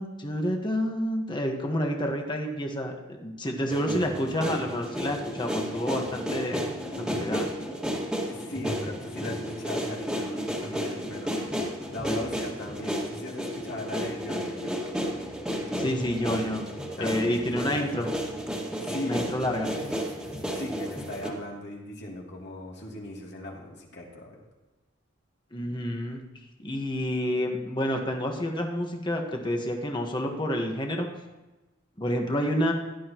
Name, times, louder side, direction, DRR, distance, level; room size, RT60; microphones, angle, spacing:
voice 1, 0.0-7.5 15.8-16.6 17.0-18.1 19.0-19.7 25.5-26.2 26.6-31.1 32.0-32.7, equal, 25° left, 2 dB, 1.5 m, -29 dB
sound 1, 3.7-21.3, equal, 5° right, 2.1 m, -32 dB
voice 2, 8.3-15.0 17.0-17.9 18.8-19.3 20.5-24.4, left 1 dB, 60° left, -2 dB, 2.9 m, -39 dB
16.5 x 12.0 x 3.1 m, 1.1 s
head